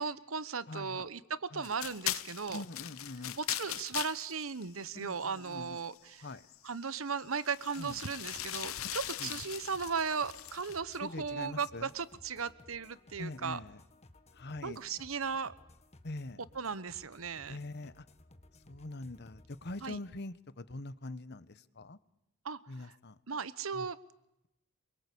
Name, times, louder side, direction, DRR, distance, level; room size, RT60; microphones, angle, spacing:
voice 1, 0.0-2.6 3.4-6.3 6.6-13.6 14.6-15.5 16.5-17.6 19.8-20.0 22.4-22.9 23.3-24.0, right 5 dB, 80° right, 17 dB, 1.1 m, -37 dB
voice 2, 0.7-1.1 1.5-1.7 2.5-3.4 4.9-5.8 6.2-6.4 7.8-8.0 9.2-9.4 11.0-11.9 13.2-13.8 14.3-14.8 16.0-16.4 17.5-18.1 18.7-22.0 22.7-23.2 23.7-23.9, left 2 dB, 50° left, 15 dB, 1.1 m, -43 dB
sound 1, 1.6-6.0 6.5-6.7 7.1-10.8, left 13 dB, 85° left, 0.9 m, -40 dB
sound 2, 7.7-20.0, left 1 dB, 30° left, 1.8 m, -60 dB
26.0 x 23.5 x 8.5 m, 0.86 s
head